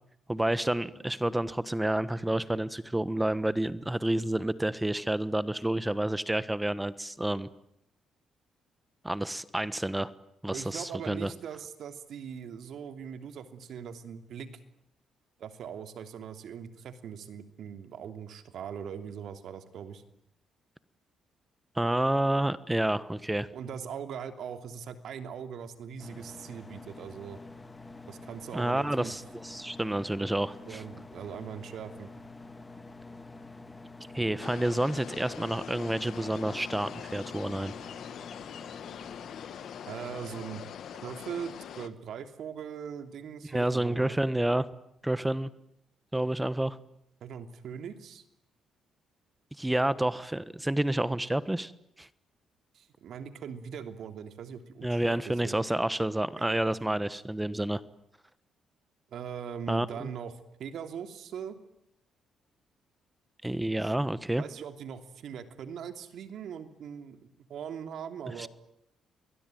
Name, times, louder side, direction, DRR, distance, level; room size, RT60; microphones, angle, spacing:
voice 1, 0.3-7.5 9.0-10.1 10.4-11.3 21.7-23.5 28.5-30.8 34.1-37.7 43.5-44.7 45.0-45.5 46.1-46.8 49.6-51.7 52.0-52.1 54.8-57.8 59.7-60.1 63.4-64.4 68.4-68.5, right 1 dB, 10° right, 16 dB, 1.3 m, -29 dB
voice 2, 10.5-14.5 15.4-20.0 23.5-27.4 28.1-29.1 30.6-32.1 34.1-34.5 39.9-40.6 41.0-44.2 47.2-48.2 52.7-55.6 59.1-60.3 60.6-61.6 64.4-68.5, right 7 dB, 70° right, 9 dB, 3.0 m, -41 dB
sound 1, 26.0-41.1, left 3 dB, 20° left, 2.1 m, -48 dB
sound 2, 34.4-41.9, left 9 dB, 70° left, 1.8 m, -43 dB
27.5 x 21.5 x 9.3 m, 0.76 s
cardioid pair, 90°, 0 cm